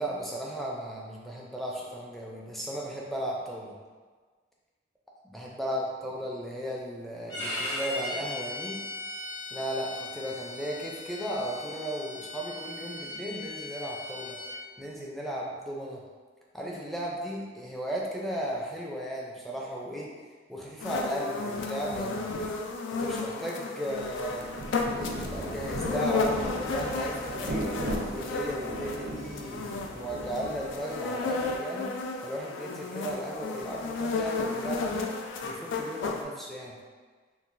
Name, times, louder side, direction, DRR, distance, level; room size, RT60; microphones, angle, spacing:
voice 1, 0.0-3.8 5.2-8.8 9.5-14.4 14.8-16.0 16.5-20.1 20.5-22.4 22.9-24.5 24.9-31.9 32.2-35.1 35.4-36.8, equal, ahead, -3 dB, 0.4 m, -35 dB
Bowed string instrument, 7.3-14.6, left 2 dB, 70° left, 0.8 m, -38 dB
sound 1, 20.8-36.2, left 3 dB, 85° left, 0.3 m, -33 dB
Rain, 23.9-31.1, right 1 dB, 75° right, 0.6 m, -37 dB
3.7 x 2.4 x 2.5 m, 1.4 s
head